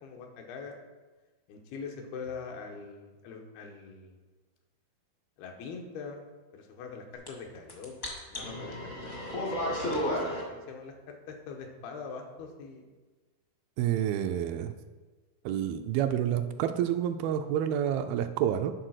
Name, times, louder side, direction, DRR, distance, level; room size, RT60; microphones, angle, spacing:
voice 1, 0.0-0.8 1.5-4.2 5.4-6.2 6.5-9.5 10.1-12.9, left 5 dB, 85° left, 2 dB, 3.0 m, -43 dB
sound 1, 7.3-7.4 7.6-10.4, equal, 55° left, 0.8 m, -32 dB
voice 2, 13.8-14.7 15.5-18.7, right 10 dB, 80° right, 8 dB, 2.3 m, -29 dB
11.0 x 4.0 x 6.3 m, 1.3 s
omnidirectional pair, 4.4 m